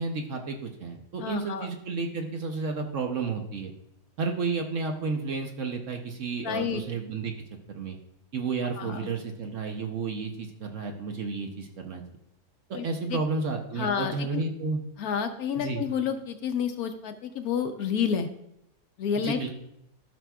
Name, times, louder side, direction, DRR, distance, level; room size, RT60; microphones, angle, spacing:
voice 1, 0.0-3.7 4.2-7.3 7.7-8.0 8.3-12.0 12.7-14.8 15.6-15.8 19.2-19.5, right 4 dB, 60° right, 3 dB, 1.0 m, -31 dB
voice 2, 1.2-1.7 6.4-6.8 8.8-9.1 12.7-13.2 13.8-14.4 15.0-18.3 19.0-19.5, left 7 dB, 70° left, 7 dB, 1.0 m, -30 dB
13.5 x 6.0 x 2.3 m, 0.80 s
omnidirectional pair, 1.8 m